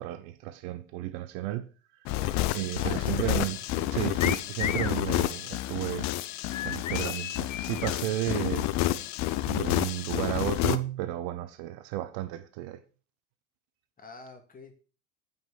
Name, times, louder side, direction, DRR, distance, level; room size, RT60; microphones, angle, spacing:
voice 1, 0.0-1.7 2.5-3.6 3.9-6.1 6.6-8.7 9.5-12.8, right 14 dB, 50° right, 0.9 m, -33 dB
sound 1, 2.1-10.8, left 15 dB, 45° left, 0.8 m, -29 dB
voice 2, 2.7-3.4 3.8-4.0 14.0-14.8, left 3 dB, 20° left, 2.7 m, -46 dB
sound 2, 4.2-5.0 6.5-8.0, left 10 dB, 80° left, 0.7 m, -34 dB
9.2 x 5.5 x 6.9 m
figure-of-eight pair, 75°, 38 cm